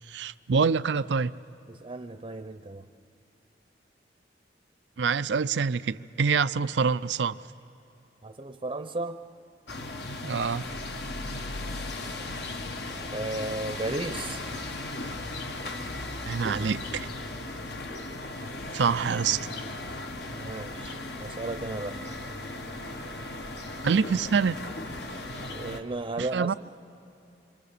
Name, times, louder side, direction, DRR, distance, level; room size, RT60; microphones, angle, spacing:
voice 1, 0.1-1.3 5.0-7.4 10.2-10.7 16.3-17.1 18.7-19.5 23.8-24.6 26.2-26.5, right 5 dB, 90° right, 0.5 m, -26 dB
voice 2, 1.7-2.9 8.2-9.2 13.0-14.4 20.3-22.0 25.5-26.5, right 2 dB, 30° right, 0.7 m, -34 dB
sound 1, 9.7-25.8, left 2 dB, 65° left, 1.3 m, -37 dB
27.5 x 25.5 x 6.8 m
head